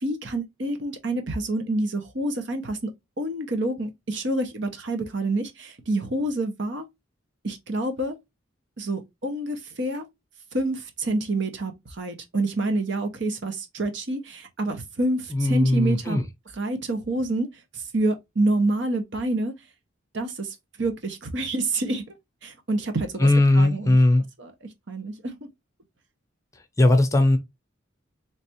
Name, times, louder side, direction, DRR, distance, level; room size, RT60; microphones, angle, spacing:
voice 1, 0.0-2.9 3.2-6.8 7.4-8.1 8.8-10.0 10.5-16.2 16.6-17.5 17.7-19.5 20.1-22.0 22.4-23.3 23.5-24.0 24.4-24.5 24.9-25.4, right 2 dB, 65° right, 0.9 m, -27 dB
voice 2, 15.3-16.2 23.2-24.2 26.8-27.4, left 2 dB, 15° left, 0.6 m, -18 dB
3.4 x 3.2 x 2.9 m
head